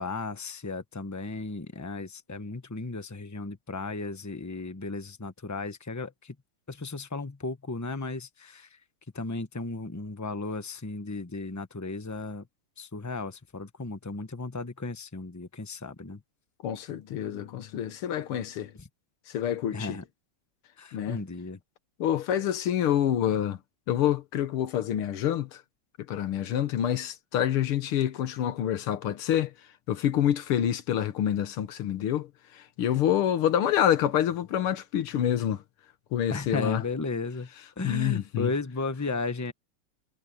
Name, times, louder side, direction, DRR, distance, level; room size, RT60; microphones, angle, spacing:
voice 1, 0.0-6.3 6.7-8.8 9.1-12.4 12.8-16.2 18.8-18.9 19.7-20.0 20.8-21.6 36.3-37.5 37.8-39.5, left 3 dB, 20° left, 0.5 m, -35 dB
voice 2, 16.6-18.7 19.3-20.0 20.9-21.2 22.0-23.6 23.9-25.6 26.1-29.5 29.9-35.6 36.1-36.8 37.8-38.5, left 10 dB, 80° left, 2.0 m, -27 dB
omnidirectional pair, 2.4 m